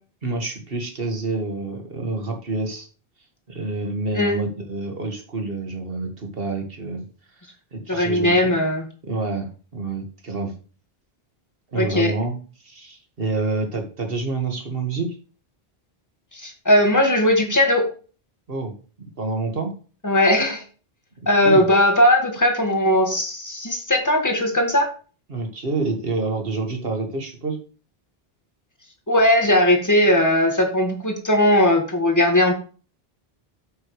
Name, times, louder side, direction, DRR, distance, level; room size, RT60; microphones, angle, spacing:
voice 1, 0.2-2.9 3.5-7.0 7.3-7.5 7.7-8.5 9.1-10.5 11.7-15.2 18.5-18.7 19.2-19.7 21.4-21.6 25.3-27.6, right 3 dB, 65° right, 4 dB, 2.0 m, -28 dB
voice 2, 7.9-8.9 11.8-12.1 16.3-17.9 20.0-20.6 21.3-24.9 29.1-32.5, left 1 dB, 15° left, 3 dB, 1.9 m, -18 dB
9.0 x 8.1 x 3.2 m, 0.37 s
omnidirectional pair, 1.0 m